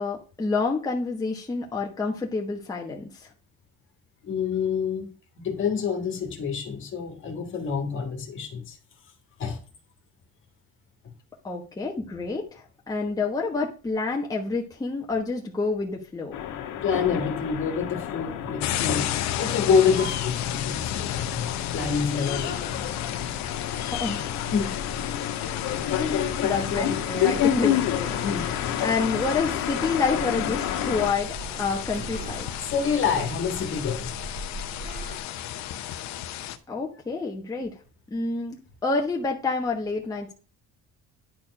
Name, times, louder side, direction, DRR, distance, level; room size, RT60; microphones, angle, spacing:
voice 1, 0.0-3.3 11.4-16.3 23.9-24.3 26.0-32.5 36.7-37.7 38.1-40.3, left 3 dB, 10° left, 1.1 m, -28 dB
voice 2, 4.2-5.0 5.4-8.8 9.4-9.6 16.8-22.8 24.5-24.8 28.2-28.6 32.6-34.2, left 6 dB, 40° left, 1.7 m, -27 dB
sound 1, 16.3-31.1, left 11 dB, 90° left, 1.5 m, -30 dB
sound 2, 18.6-36.6, left 12 dB, 65° left, 0.9 m, -33 dB
Sliding door, 20.0-35.2, right 1 dB, 30° right, 2.1 m, -41 dB
10.5 x 4.4 x 5.9 m
cardioid pair, 165°, 30 cm